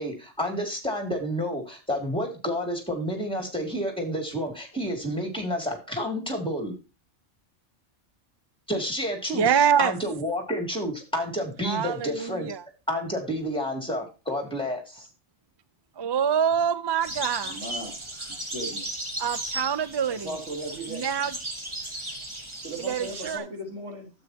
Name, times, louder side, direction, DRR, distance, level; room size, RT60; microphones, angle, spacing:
voice 1, 0.0-6.7 8.7-12.5 12.9-15.1, equal, 5° left, 4 dB, 2.7 m, -30 dB
voice 2, 9.3-9.9 11.6-12.6 16.0-17.6 19.2-20.4 20.9-21.4 22.8-23.5, right 8 dB, 40° right, 16 dB, 0.3 m, -25 dB
sound 1, 17.0-23.4, right 1 dB, 25° right, 1.6 m, -36 dB
voice 3, 17.4-18.0 18.5-18.9 20.2-21.0 22.6-24.1, right 1 dB, 85° right, -1 dB, 4.1 m, -36 dB
12.0 x 8.1 x 2.8 m, 0.30 s
omnidirectional pair, 1.2 m